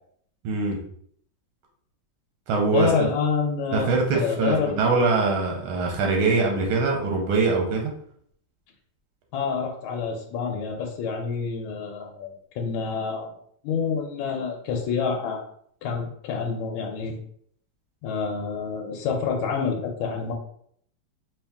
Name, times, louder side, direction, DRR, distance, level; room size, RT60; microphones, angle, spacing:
voice 1, 0.4-0.8 2.5-3.1 3.7-7.9, right 4 dB, 90° right, 1 dB, 1.6 m, -23 dB
voice 2, 2.7-4.8 9.3-13.3 13.6-15.4 15.8-17.2 18.0-20.3, left 5 dB, 80° left, 0 dB, 1.4 m, -27 dB
3.5 x 2.7 x 3.4 m, 0.64 s
omnidirectional pair, 2.3 m